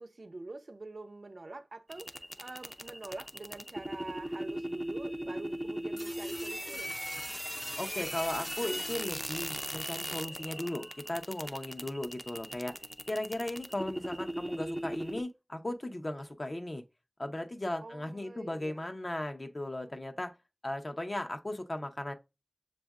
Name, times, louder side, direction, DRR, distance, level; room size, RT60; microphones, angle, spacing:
voice 1, 0.0-7.0 17.8-18.9, right 2 dB, 75° right, 0.5 m, -46 dB
sound 1, 1.9-15.2, equal, ahead, 0.4 m, -38 dB
voice 2, 7.8-12.7 13.1-16.8 17.2-20.3 20.6-22.1, left 1 dB, 45° left, 0.7 m, -37 dB
7.1 x 2.6 x 2.3 m
wide cardioid pair, 50°, 0 cm